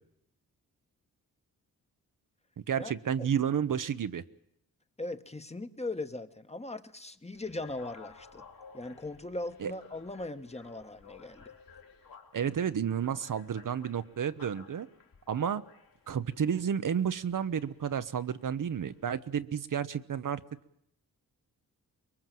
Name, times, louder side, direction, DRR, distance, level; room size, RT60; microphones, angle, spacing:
voice 1, 2.7-4.2 9.6-9.7 12.3-14.9 15.3-15.6 16.1-20.4, right 8 dB, 55° right, 12 dB, 1.0 m, -31 dB
voice 2, 5.0-8.4 8.7-11.5, left 2 dB, 15° left, 9 dB, 1.3 m, -39 dB
sound 1, 7.3-19.2, left 5 dB, 65° left, 3.8 m, -55 dB
24.0 x 21.5 x 7.7 m, 0.73 s
cardioid pair, 80°, 37 cm